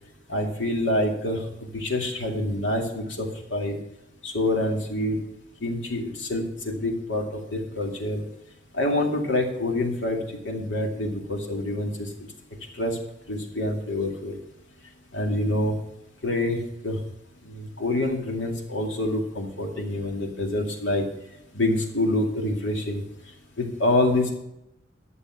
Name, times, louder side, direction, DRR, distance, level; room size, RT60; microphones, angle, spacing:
voice 1, 0.3-1.4 1.7-3.8 4.2-5.2 5.6-8.2 8.7-10.2 10.4-12.1 12.7-13.0 13.3-14.4 15.1-15.8 16.2-16.6 16.8-17.0 17.4-21.1 21.5-23.0 23.6-24.3, left 1 dB, 80° left, 2 dB, 2.2 m, -26 dB
12.0 x 7.0 x 5.8 m, 0.84 s
head